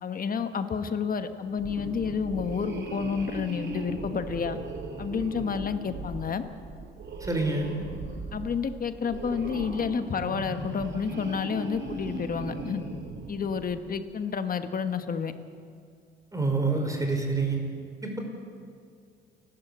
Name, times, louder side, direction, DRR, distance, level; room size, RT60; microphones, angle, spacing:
voice 1, 0.0-4.6 5.0-6.4 8.3-12.8 13.3-15.3, left 6 dB, 45° left, 9 dB, 1.4 m, -30 dB
sound 1, 1.5-14.0, right 3 dB, 65° right, 3.7 m, -38 dB
voice 2, 7.2-7.7 16.3-17.6 18.0-18.2, right 3 dB, 15° right, 3 dB, 5.0 m, -27 dB
29.5 x 12.0 x 8.2 m, 2.2 s
cardioid pair, 90°, 20 cm